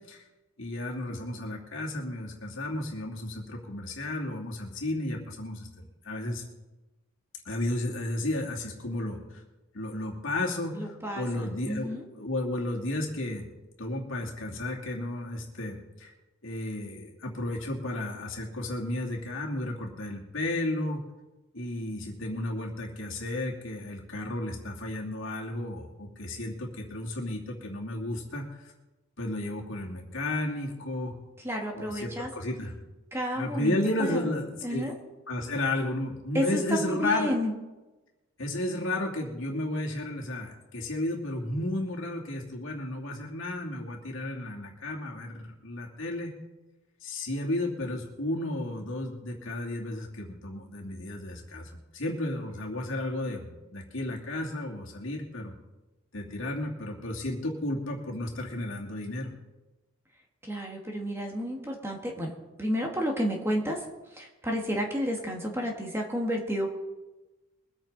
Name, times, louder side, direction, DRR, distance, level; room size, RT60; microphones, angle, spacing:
voice 1, 0.6-5.7 6.0-6.4 7.4-9.4 9.7-13.5 13.8-16.1 16.4-21.0 21.5-28.7 29.2-31.1 31.7-32.7 33.3-34.9 35.3-37.3 38.4-46.3 47.0-55.5 56.1-59.3, left 1 dB, 65° left, -1 dB, 2.6 m, -33 dB
voice 2, 10.7-12.0 31.4-32.3 33.1-33.8 34.1-34.3 34.6-34.9 36.3-37.5 60.4-62.3 62.6-63.8 64.1-66.7, equal, 10° right, 1 dB, 1.6 m, -31 dB
22.5 x 8.9 x 3.9 m, 1.1 s
head